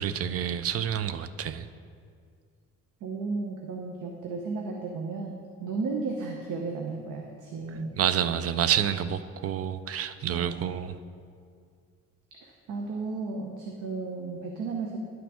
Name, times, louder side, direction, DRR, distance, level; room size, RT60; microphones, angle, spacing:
voice 1, 0.0-1.7 8.0-10.9, right 9 dB, 50° right, 12 dB, 0.4 m, -28 dB
voice 2, 3.0-7.9 10.3-10.8 12.4-15.0, right 4 dB, 80° right, 1 dB, 0.8 m, -34 dB
11.0 x 6.0 x 3.6 m, 2.2 s
cardioid pair, 90°, 30 cm